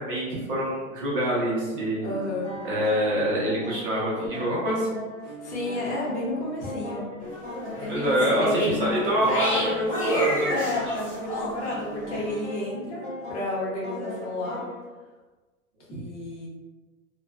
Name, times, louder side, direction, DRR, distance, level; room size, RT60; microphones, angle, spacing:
voice 1, 0.0-2.1 2.6-5.0 7.9-10.5 15.9-16.0, equal, 40° right, -6 dB, 0.7 m, -26 dB
voice 2, 2.0-2.5 5.2-7.1 8.2-9.0 10.5-14.6 15.9-16.5, left 2 dB, 50° left, -4 dB, 0.9 m, -31 dB
sound 1, 2.0-14.8, equal, ahead, 1.2 m, -39 dB
sound 2, 7.2-11.8, equal, 30° left, 0.3 m, -29 dB
2.4 x 2.2 x 2.2 m, 1.3 s
hypercardioid pair, 160°, 43 cm